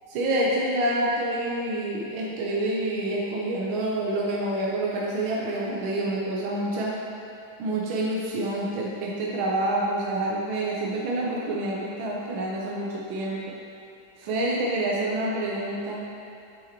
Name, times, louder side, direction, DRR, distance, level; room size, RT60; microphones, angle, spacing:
voice 1, 0.1-6.9 7.6-13.5 14.2-16.0, right 1 dB, 75° right, -4 dB, 1.6 m, -27 dB
8.6 x 6.8 x 3.0 m, 2.6 s
omnidirectional pair, 2.3 m